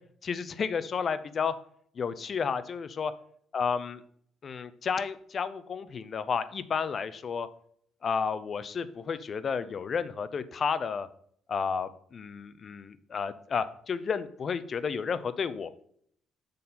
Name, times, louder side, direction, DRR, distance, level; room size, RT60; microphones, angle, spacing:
voice 1, 0.2-1.5 2.0-3.1 3.5-4.0 4.4-7.5 8.0-11.1 11.5-15.7, left 6 dB, 40° left, 14 dB, 0.5 m, -32 dB
6.5 x 4.2 x 5.4 m, 0.64 s
cardioid pair, 120°, 0 cm